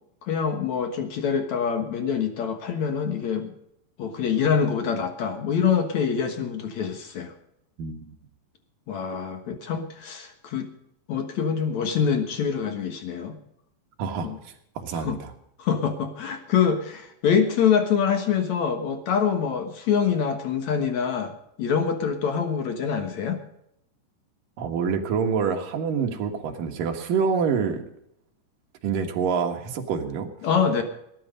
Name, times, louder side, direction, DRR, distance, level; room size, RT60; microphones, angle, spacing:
voice 1, 0.2-3.5 4.0-7.3 8.9-10.7 11.1-13.4 14.2-14.4 14.9-15.2 15.6-21.3 21.6-23.4 30.4-30.8, left 7 dB, 65° left, 7 dB, 1.8 m, -25 dB
voice 2, 7.8-8.1 14.0-14.3 14.8-15.3 24.6-27.8 28.8-30.3, right 6 dB, 60° right, 4 dB, 2.7 m, -26 dB
19.0 x 10.5 x 5.3 m, 0.75 s
omnidirectional pair, 5.2 m